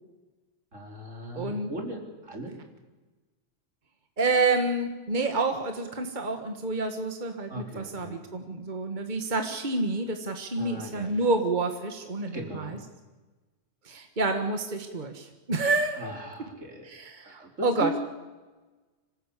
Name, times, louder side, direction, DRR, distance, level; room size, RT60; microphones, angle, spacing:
voice 1, 0.7-2.6 7.5-8.2 10.6-11.3 12.3-12.8 16.0-16.9 17.2-18.0, right 1 dB, 75° right, 2 dB, 4.2 m, -38 dB
voice 2, 1.4-1.7 4.2-12.8 13.8-16.1 16.9-18.0, right 3 dB, 40° right, 5 dB, 1.8 m, -28 dB
26.0 x 18.0 x 8.5 m, 1.2 s
omnidirectional pair, 1.3 m